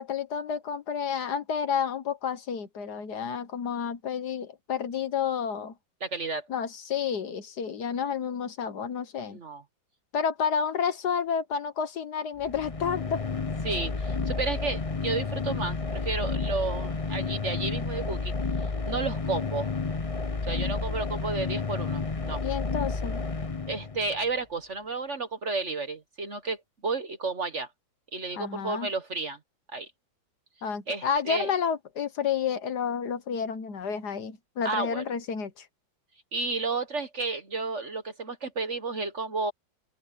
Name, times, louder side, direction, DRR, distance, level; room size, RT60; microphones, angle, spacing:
voice 1, 0.0-5.7 6.5-9.4 10.1-13.2 22.4-23.2 28.4-28.9 30.6-35.7, left 7 dB, 60° left, 1.6 m, -30 dB
voice 2, 6.0-6.4 9.3-9.6 13.6-18.3 18.8-19.7 20.4-22.4 23.7-26.6 26.8-27.7 28.1-29.4 29.7-29.9 30.9-31.5 34.6-35.0 36.3-39.5, right 3 dB, 40° right, 1.3 m, -32 dB
sound 1, 12.4-24.2, left 4 dB, 30° left, 0.6 m, -31 dB
open air
omnidirectional pair, 2.1 m